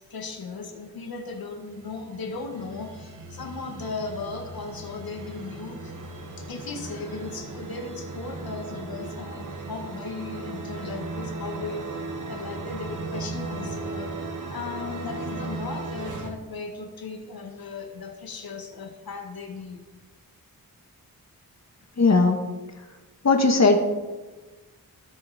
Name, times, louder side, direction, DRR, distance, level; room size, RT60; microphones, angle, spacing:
voice 1, 0.1-5.9 6.4-19.8, left 4 dB, 75° left, 4 dB, 2.0 m, -37 dB
sound 1, 1.7-16.3, right 3 dB, 60° right, 1.7 m, -36 dB
voice 2, 22.0-22.5 23.2-23.8, left 3 dB, 45° left, 4 dB, 1.6 m, -18 dB
19.5 x 8.0 x 4.4 m, 1.2 s
wide cardioid pair, 90°, 36 cm